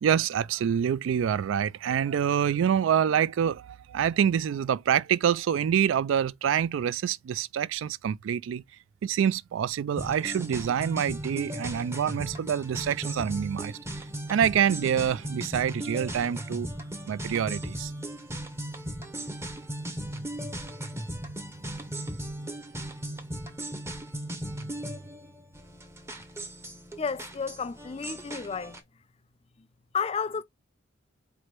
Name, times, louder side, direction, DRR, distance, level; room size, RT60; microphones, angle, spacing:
voice 1, 0.0-8.6 9.0-13.8 14.3-16.7 17.1-17.9, right 8 dB, 80° right, 0.3 m, -26 dB
sound 1, 9.9-28.8, right 1 dB, 15° right, 0.7 m, -37 dB
voice 2, 27.0-28.8 29.6-29.7 29.9-30.4, left 5 dB, 30° left, 0.4 m, -32 dB
4.8 x 2.1 x 4.4 m
head